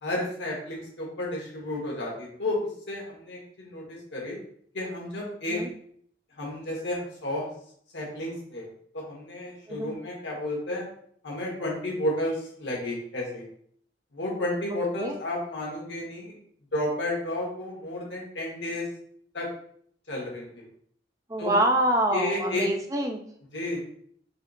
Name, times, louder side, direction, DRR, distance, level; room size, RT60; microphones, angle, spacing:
voice 1, 0.0-2.6 2.9-4.4 4.7-5.6 6.4-7.5 7.9-8.7 8.9-10.9 11.2-13.4 14.1-16.3 16.7-18.9 19.3-19.5 20.1-20.6 21.4-21.6 22.1-22.7 23.5-23.8, left 1 dB, 90° left, -2 dB, 1.3 m, -32 dB
voice 2, 21.3-23.2, right 1 dB, 20° right, 3 dB, 0.4 m, -26 dB
4.1 x 2.0 x 3.9 m, 0.63 s
head